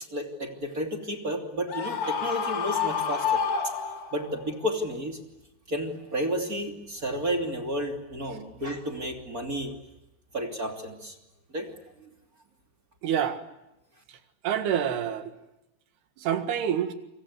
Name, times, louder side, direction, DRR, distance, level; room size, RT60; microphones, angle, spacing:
voice 1, 0.1-3.4 4.1-5.2 5.7-9.7 10.3-11.2 11.5-11.7, equal, 25° right, 3 dB, 2.9 m, -31 dB
Screaming, 1.7-4.4, left 6 dB, 55° left, 1.0 m, -29 dB
voice 2, 13.0-13.4 14.4-15.3 16.2-16.9, right 9 dB, 85° right, 8 dB, 3.9 m, -27 dB
29.0 x 25.0 x 8.2 m, 0.92 s
omnidirectional pair, 4.5 m